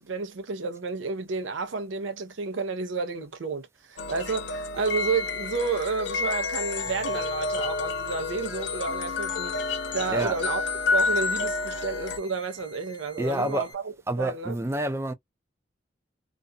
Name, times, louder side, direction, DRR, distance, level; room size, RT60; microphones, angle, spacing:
voice 1, 0.0-9.6 9.9-10.6 10.9-14.6, right 4 dB, 85° right, 0.6 m, -31 dB
sound 1, 4.0-12.2, left 4 dB, 70° left, 0.5 m, -29 dB
sound 2, 4.7-13.7, left 1 dB, 25° left, 0.6 m, -50 dB
voice 2, 13.2-13.7 14.1-15.1, right 1 dB, 15° right, 0.3 m, -28 dB
2.5 x 2.2 x 2.5 m
head